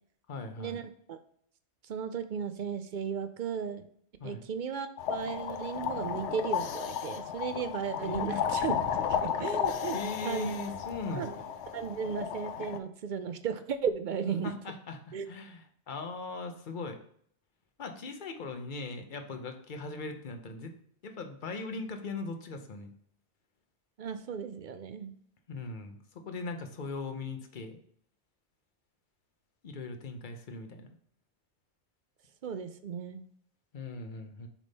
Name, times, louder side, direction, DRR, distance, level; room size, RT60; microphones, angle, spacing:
voice 1, 0.3-0.8 4.2-4.4 8.0-8.5 9.9-11.4 14.4-17.0 17.8-20.7 21.0-22.9 25.5-27.8 29.6-30.9 33.7-34.5, left 3 dB, 50° left, 6 dB, 0.9 m, -39 dB
voice 2, 1.9-3.9 4.2-8.7 9.2-10.0 10.2-10.5 11.1-11.3 11.7-14.5 15.1-15.3 24.0-25.1 32.4-33.2, right 7 dB, 55° right, 9 dB, 0.6 m, -35 dB
sound 1, 5.0-12.8, left 8 dB, 80° left, 0.9 m, -33 dB
7.2 x 3.6 x 4.1 m, 0.63 s
omnidirectional pair, 1.2 m